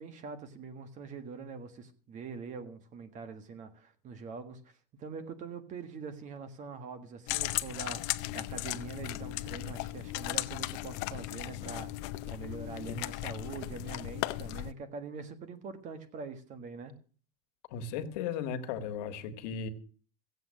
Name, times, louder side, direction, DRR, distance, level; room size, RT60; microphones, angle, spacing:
voice 1, 0.0-4.6 5.0-16.9, right 5 dB, 35° right, 1.6 m, -44 dB
sound 1, 7.3-14.7, left 18 dB, 55° left, 0.6 m, -36 dB
voice 2, 17.7-19.7, left 7 dB, 75° left, 1.6 m, -36 dB
16.0 x 8.0 x 6.3 m
cardioid pair, 150°, 20 cm